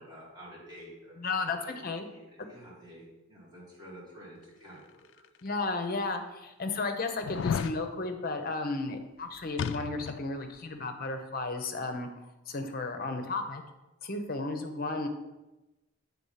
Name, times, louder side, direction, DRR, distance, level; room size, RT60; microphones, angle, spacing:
voice 1, 0.0-5.3, equal, 20° right, -7 dB, 2.6 m, -50 dB
voice 2, 1.2-2.1 5.4-12.1 12.5-13.6 14.0-15.1, left 3 dB, 45° left, 6 dB, 0.7 m, -33 dB
sound 1, 5.2-5.3 6.0-6.1 7.2-7.8 9.6-10.3 10.6-10.7, left 6 dB, 60° left, 0.3 m, -32 dB
7.7 x 3.6 x 5.6 m, 1.0 s
head